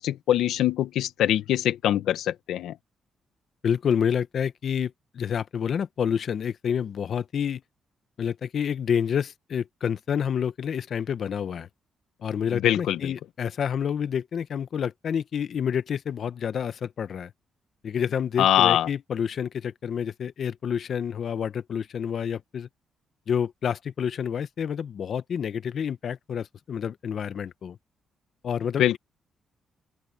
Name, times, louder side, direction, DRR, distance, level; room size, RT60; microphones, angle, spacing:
voice 1, 0.0-2.7 12.5-13.1 18.4-18.9 28.8-29.0, left 12 dB, 90° left, 1.1 m, -23 dB
voice 2, 3.6-7.6 8.2-11.7 12.2-17.3 17.8-22.7 23.3-27.8 28.4-28.8, left 8 dB, 55° left, 0.9 m, -28 dB
open air
cardioid pair, 110°, 0 cm